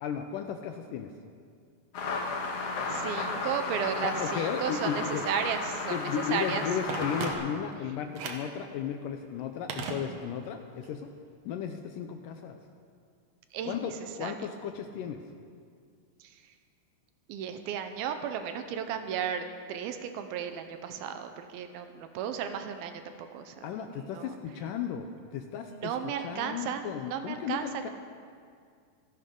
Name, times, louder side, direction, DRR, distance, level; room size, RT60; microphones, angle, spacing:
voice 1, 0.0-1.1 4.0-5.2 5.9-11.1 11.5-12.6 13.6-15.2 23.6-25.1 25.3-25.9 26.2-27.9, left 8 dB, 80° left, 6 dB, 2.0 m, -35 dB
sound 1, 1.9-7.3, left 3 dB, 55° left, 1.7 m, -34 dB
voice 2, 2.9-6.7 13.5-14.5 16.2-16.4 17.3-24.4 25.7-27.9, right 8 dB, 85° right, 8 dB, 2.6 m, -35 dB
Telephone, 6.9-7.8 8.1-8.6 9.7-10.5 10.8-10.9, right 5 dB, 70° right, 1.6 m, -37 dB
27.0 x 11.0 x 3.8 m, 2.1 s
omnidirectional pair, 4.4 m